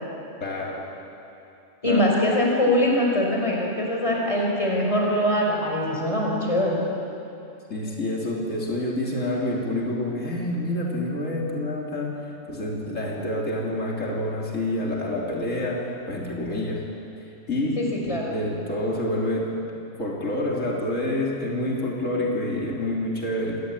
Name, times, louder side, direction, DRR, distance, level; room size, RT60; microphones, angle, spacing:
voice 1, 0.4-0.9 1.8-2.0 7.7-12.1 12.5-16.8 17.5-19.6 20.0-23.6, left 1 dB, 90° left, -2 dB, 3.6 m, -27 dB
voice 2, 1.8-6.8 17.8-18.3, left 1 dB, 25° left, -2 dB, 5.4 m, -23 dB
26.5 x 20.0 x 8.8 m, 2.8 s
omnidirectional pair, 1.3 m